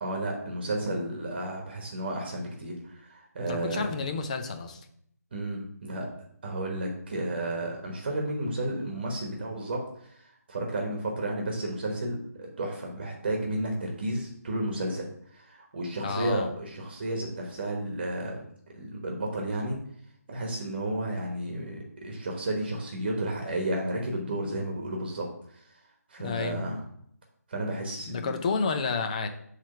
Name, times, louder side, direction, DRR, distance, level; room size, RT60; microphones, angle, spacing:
voice 1, 0.0-3.9 5.3-6.1 6.4-18.4 18.7-19.8 20.3-25.3 25.5-25.6 26.1-26.8 27.5-28.3, right 1 dB, 35° right, 1 dB, 1.3 m, -32 dB
voice 2, 3.5-4.8 16.0-16.5 26.2-26.7 28.1-29.3, left 4 dB, 25° left, 7 dB, 0.6 m, -30 dB
7.4 x 3.3 x 5.7 m, 0.67 s
figure-of-eight pair, 155°, 9 cm